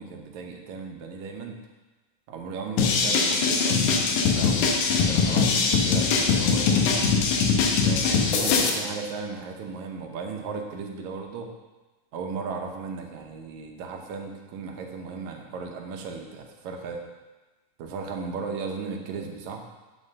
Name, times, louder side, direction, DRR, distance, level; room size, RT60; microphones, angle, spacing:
voice 1, 0.0-1.6 2.3-6.8 7.8-11.5 12.1-17.0 17.8-19.6, right 5 dB, 75° right, 2 dB, 2.2 m, -36 dB
sound 1, 2.8-8.7, left 5 dB, 90° left, 2.4 m, -22 dB
8.8 x 4.2 x 6.5 m, 1.2 s
omnidirectional pair, 3.5 m